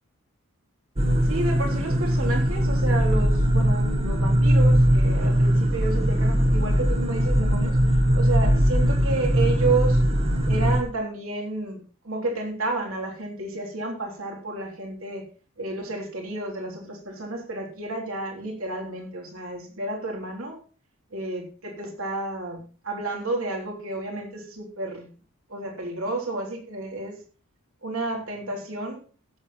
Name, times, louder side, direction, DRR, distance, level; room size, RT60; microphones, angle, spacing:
sound 1, 1.0-10.8, equal, 30° right, 1.3 m, -20 dB
voice 1, 1.3-7.8 8.1-10.0 10.4-11.8 12.0-15.2 15.6-20.6 21.1-25.1 25.5-27.2 27.8-29.0, right 2 dB, 70° right, 1 dB, 3.4 m, -31 dB
16.0 x 7.4 x 4.2 m, 0.37 s
head